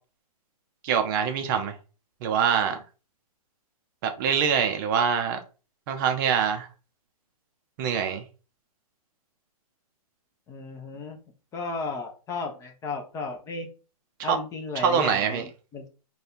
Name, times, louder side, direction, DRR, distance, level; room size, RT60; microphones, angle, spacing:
voice 1, 0.8-1.7 2.2-2.8 4.0-5.4 5.9-6.7 7.8-8.2 14.2-14.4 14.8-15.4, right 7 dB, 35° right, 6 dB, 0.5 m, -24 dB
voice 2, 10.5-11.2 11.5-13.7 14.2-15.9, left 3 dB, 15° left, 3 dB, 0.5 m, -34 dB
3.4 x 2.3 x 4.1 m, 0.34 s
hypercardioid pair, 140°, 19 cm